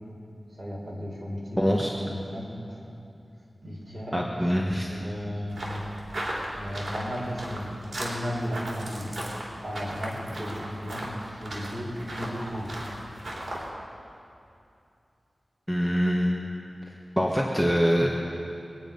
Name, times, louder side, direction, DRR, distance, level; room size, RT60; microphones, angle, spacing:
voice 1, 0.5-1.6 1.9-2.9 3.6-5.6 6.5-7.7 8.0-9.1 9.6-12.8, equal, 35° right, -4 dB, 4.6 m, -35 dB
voice 2, 1.6-1.9 4.1-4.9 15.7-16.5 17.2-18.1, equal, ahead, -2 dB, 1.4 m, -24 dB
sound 1, 5.5-13.7, right 1 dB, 60° right, 3.6 m, -37 dB
23.5 x 9.8 x 5.4 m, 2.6 s
wide cardioid pair, 75°, 0 cm